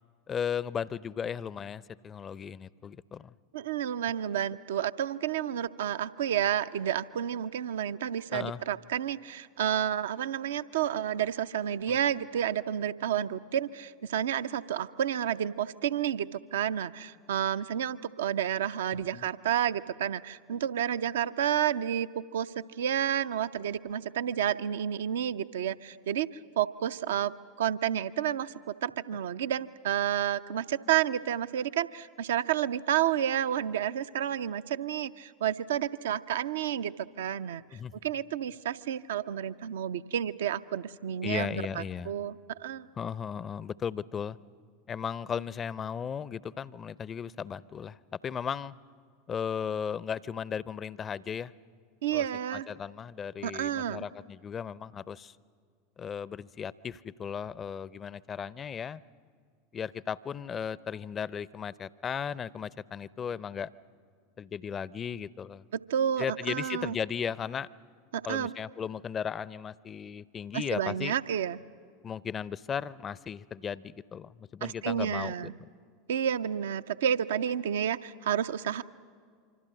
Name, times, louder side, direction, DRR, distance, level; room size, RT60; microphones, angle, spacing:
voice 1, 0.3-3.3 8.3-8.6 11.9-12.0 19.1-19.2 37.7-37.9 41.2-42.1 43.0-44.4 44.9-48.7 49.3-51.5 52.1-52.2 52.5-55.3 56.0-59.0 59.7-63.7 64.4-65.6 66.2-67.7 68.3-71.1 72.0-75.5, left 7 dB, 25° left, 21 dB, 0.5 m, -36 dB
voice 2, 3.5-26.3 26.6-37.6 38.0-42.9 52.0-52.7 53.4-54.0 65.7-66.9 68.1-68.5 70.5-71.6 74.6-75.5 76.1-78.8, right 10 dB, 65° right, 13 dB, 0.6 m, -30 dB
26.0 x 25.0 x 6.5 m, 2.1 s
figure-of-eight pair, 80°, 0 cm